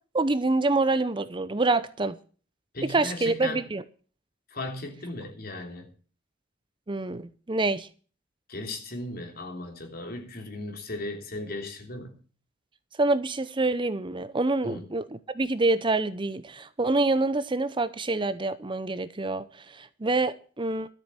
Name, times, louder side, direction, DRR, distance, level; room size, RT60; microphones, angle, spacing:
voice 1, 0.1-2.2 2.8-3.8 6.9-7.9 13.0-15.0 15.3-19.5 19.7-20.9, right 2 dB, 25° right, 0.7 m, -26 dB
voice 2, 2.7-3.6 4.5-5.9 8.5-12.2 14.6-14.9, left 2 dB, 55° left, 3.3 m, -36 dB
13.0 x 7.6 x 7.7 m
head